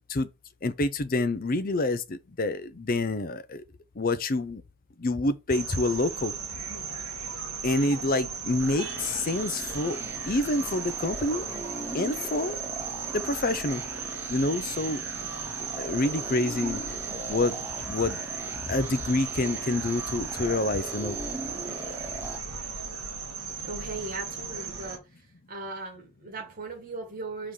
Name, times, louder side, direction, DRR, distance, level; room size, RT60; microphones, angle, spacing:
voice 1, 0.6-3.6 4.0-4.6 5.0-6.3 7.6-10.0 10.2-11.4 11.9-12.6 13.1-13.8 14.3-15.0 15.8-17.0 17.3-18.2 18.6-21.2, left 2 dB, 40° left, 0.6 m, -27 dB
sound 1, 5.5-25.0, right 6 dB, 70° right, 1.5 m, -36 dB
sound 2, 8.6-22.4, right 2 dB, 10° right, 0.9 m, -40 dB
voice 2, 23.6-25.0 25.5-27.5, right 3 dB, 40° right, 2.0 m, -38 dB
4.9 x 3.7 x 5.5 m
head